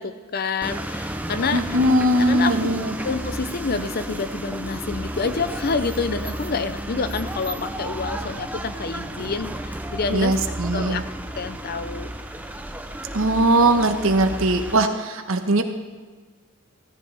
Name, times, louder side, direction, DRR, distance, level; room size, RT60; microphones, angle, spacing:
voice 1, 0.0-1.6 2.1-2.7 3.0-10.4 10.7-11.0 11.4-12.1, left 4 dB, 45° left, 12 dB, 0.5 m, -28 dB
sound 1, 0.6-14.8, right 1 dB, 5° right, 0.5 m, -32 dB
voice 2, 1.5-2.9 10.1-11.0 13.1-15.6, right 1 dB, 70° right, 6 dB, 1.3 m, -20 dB
17.0 x 14.5 x 3.5 m, 1.5 s
head